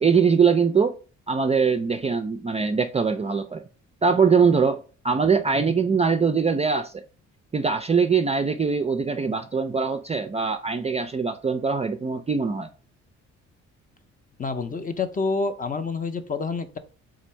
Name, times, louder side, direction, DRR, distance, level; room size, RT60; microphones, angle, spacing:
voice 1, 0.0-0.9 1.3-3.6 4.0-4.8 5.0-7.0 7.5-12.7, right 5 dB, 20° right, 0.4 m, -22 dB
voice 2, 14.4-16.8, left 4 dB, 30° left, 0.6 m, -28 dB
3.8 x 2.5 x 4.3 m
cardioid pair, 90°, 30 cm